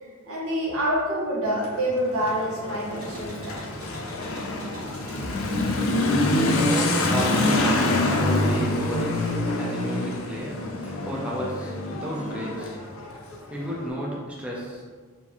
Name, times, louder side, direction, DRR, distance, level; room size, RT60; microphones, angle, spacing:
voice 1, 0.0-3.6, equal, 85° right, -5 dB, 1.1 m, -27 dB
Motorcycle / Accelerating revving vroom, 1.4-13.8, left 2 dB, 70° left, 0.5 m, -26 dB
sound 1, 2.9-9.6 9.9-10.8, equal, 65° right, 1.2 m, -43 dB
voice 2, 6.3-14.8, equal, 5° right, -5 dB, 0.4 m, -32 dB
3.5 x 2.6 x 2.9 m, 1.5 s
head